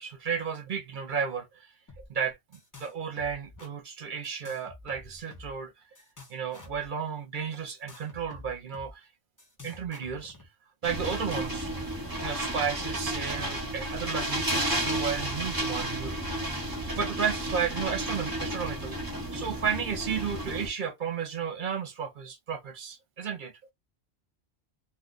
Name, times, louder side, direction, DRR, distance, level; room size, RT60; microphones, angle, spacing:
voice 1, 0.0-1.7 2.1-2.4 2.8-5.7 6.3-9.1 9.6-10.4 10.8-11.7 12.2-16.2 16.9-19.0 19.3-23.5, right 7 dB, 50° right, 0.8 m, -33 dB
sound 1, 1.9-2.1 2.3-2.9 3.2-3.7 4.2-5.6 6.0-6.9 7.7-8.9 9.4-10.5 11.1-13.6 13.9-14.0 14.5-15.6, left 2 dB, 20° left, 0.7 m, -49 dB
sound 2, 10.8-20.7, right 1 dB, 20° right, 0.8 m, -32 dB
2.5 x 2.4 x 3.7 m
omnidirectional pair, 1.1 m